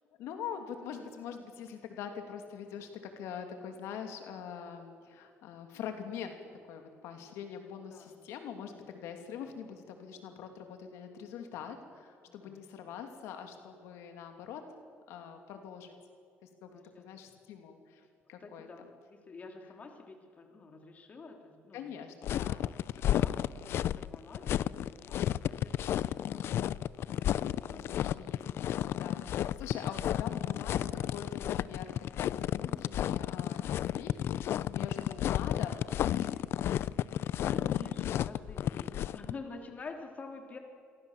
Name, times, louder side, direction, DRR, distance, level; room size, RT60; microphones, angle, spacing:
voice 1, 0.2-6.4 6.7-14.6 15.1-15.9 16.4-16.7 17.0-18.7 21.7-23.1 27.5-28.4 28.7-34.1 34.6-36.4, left 8 dB, 85° left, 5 dB, 2.9 m, -44 dB
voice 2, 12.3-12.6 16.7-17.1 18.4-18.8 19.1-21.9 22.4-22.5 22.8-26.7 27.0-28.1 37.4-40.6, left 4 dB, 35° left, 3 dB, 3.4 m, -48 dB
sound 1, 22.2-39.3, left 11 dB, 60° left, 0.6 m, -32 dB
29.0 x 23.0 x 7.5 m, 2.4 s
cardioid pair, 130°, 5 cm